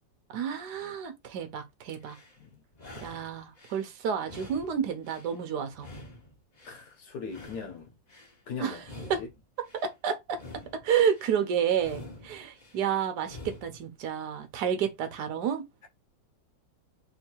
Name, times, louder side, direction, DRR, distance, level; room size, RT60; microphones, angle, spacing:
voice 1, 0.3-2.2 3.0-5.9 8.6-8.8 9.1-9.2 9.7-10.4 10.7-15.6, right 8 dB, 65° right, 1.4 m, -30 dB
sound 1, 1.9-2.4 2.7-3.9 4.2-5.4 5.7-6.8 7.2-8.3 8.8-9.9 10.3-11.4 11.8-12.8 13.2-13.9, left 2 dB, 30° left, 0.9 m, -47 dB
voice 2, 6.6-7.9 8.5-9.3, left 5 dB, 60° left, 1.5 m, -40 dB
3.6 x 2.8 x 4.4 m
omnidirectional pair, 2.1 m